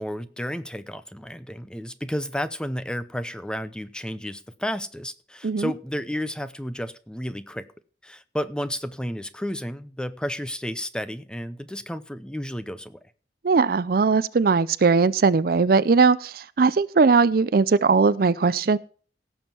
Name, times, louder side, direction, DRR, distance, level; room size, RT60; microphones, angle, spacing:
voice 1, 0.0-7.7 8.0-13.0, equal, 5° left, 0.7 m, -32 dB
voice 2, 13.4-18.8, right 4 dB, 55° right, 0.4 m, -19 dB
17.0 x 7.3 x 4.5 m
head